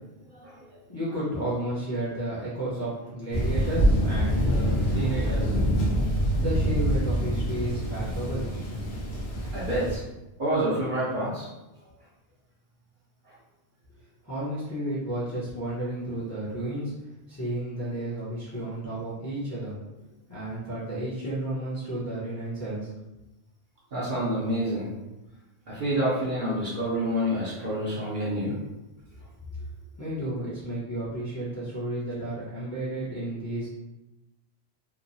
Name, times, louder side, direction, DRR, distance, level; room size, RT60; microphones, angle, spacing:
voice 1, 0.9-5.5 6.1-8.5 13.9-14.0 14.2-16.9 17.3-19.7 20.3-22.9 30.0-33.7, right 1 dB, 20° left, -9 dB, 0.6 m, -32 dB
Thunder, 3.3-10.0, equal, 60° left, 0.9 m, -25 dB
voice 2, 9.5-10.0 10.4-11.5 23.9-24.9 25.7-28.5, right 1 dB, 55° right, -7 dB, 0.8 m, -28 dB
3.0 x 2.1 x 2.6 m, 1.0 s
omnidirectional pair, 1.1 m